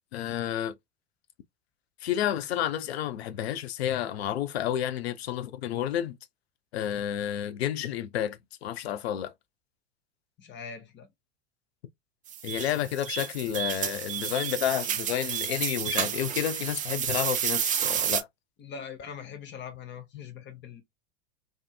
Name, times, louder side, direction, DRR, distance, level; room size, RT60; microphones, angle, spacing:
voice 1, 0.1-0.7 2.0-6.2 6.7-9.3 12.4-18.3, left 11 dB, 80° left, 0.5 m, -30 dB
voice 2, 10.4-11.1 18.6-20.8, left 7 dB, 35° left, 0.9 m, -42 dB
sound 1, 12.3-18.2, right 10 dB, 25° right, 0.4 m, -31 dB
2.7 x 2.5 x 2.3 m
hypercardioid pair, 90°, 31 cm